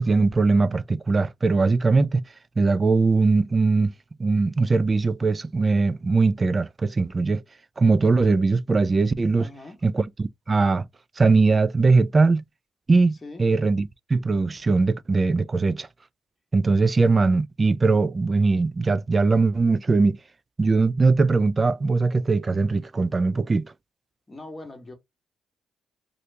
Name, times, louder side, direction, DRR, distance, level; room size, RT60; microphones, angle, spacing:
voice 1, 0.0-2.2 2.6-3.9 4.2-7.4 7.8-9.5 9.8-10.9 11.2-12.4 12.9-15.9 16.5-20.2 20.6-23.7, right 3 dB, 30° right, 0.3 m, -21 dB
voice 2, 9.4-9.8 13.2-13.5 24.3-24.9, left 2 dB, 20° left, 1.3 m, -41 dB
2.8 x 2.6 x 3.3 m
cardioid pair, 90°, 0 cm